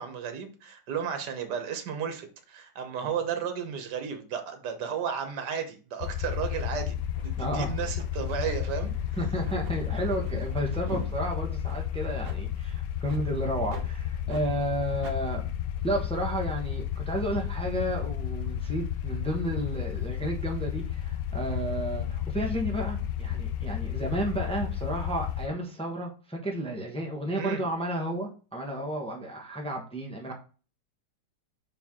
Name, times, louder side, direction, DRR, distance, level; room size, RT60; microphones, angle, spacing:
voice 1, 0.0-7.0 7.2-8.9 10.9-11.1 27.3-27.6, right 7 dB, 70° right, 6 dB, 1.6 m, -33 dB
sound 1, 6.0-25.5, left 10 dB, 80° left, 1.2 m, -32 dB
sound 2, 6.3-6.4 7.1-7.4 7.8-11.2 11.6-11.8 12.2-12.4 13.0-13.2 13.7-13.9 14.3-14.5 15.0-15.2, right 4 dB, 45° right, 0.9 m, -47 dB
voice 2, 7.3-7.7 9.2-15.5 15.8-30.3, right 1 dB, 5° left, 0 dB, 0.9 m, -32 dB
6.1 x 4.5 x 3.7 m, 0.36 s
omnidirectional pair, 1.9 m